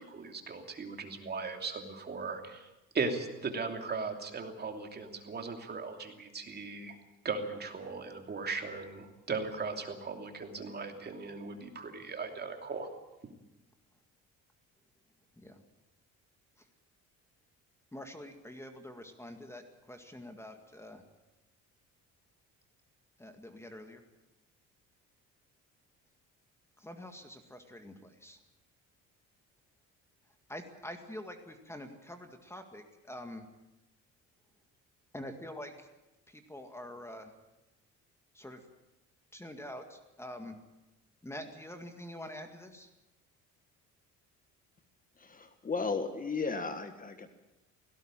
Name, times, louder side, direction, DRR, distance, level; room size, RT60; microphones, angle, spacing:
voice 1, 0.0-2.7 2.9-7.0 7.2-12.9 13.2-13.3, right 4 dB, 30° right, 5 dB, 2.9 m, -38 dB
voice 2, 17.9-21.0 23.2-24.0 26.8-28.4 30.5-33.5 35.1-35.9 36.3-37.3 38.3-38.6 39.3-40.6 41.2-42.9, left 1 dB, 10° left, 6 dB, 2.0 m, -46 dB
voice 3, 45.2-47.3, left 4 dB, 25° left, 9 dB, 1.6 m, -35 dB
17.5 x 17.0 x 9.0 m, 0.98 s
cardioid pair, 115°, 31 cm